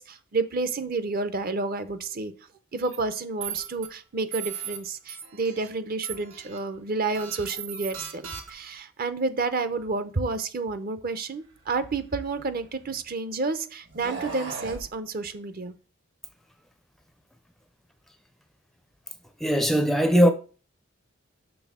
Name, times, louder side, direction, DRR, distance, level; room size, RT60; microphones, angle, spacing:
voice 1, 0.0-2.3 2.7-15.8, right 3 dB, 45° right, 0.6 m, -30 dB
sound 1, 2.8-3.0 3.4-3.9 4.3-4.8 5.1-5.7 6.0-6.6 7.1-8.7, right 8 dB, 80° right, 1.2 m, -37 dB
sound 2, 11.6-13.1 13.9-14.9, right 3 dB, 60° right, 1.5 m, -39 dB
voice 2, 19.4-20.3, equal, ahead, 0.4 m, -19 dB
6.2 x 3.5 x 6.1 m
head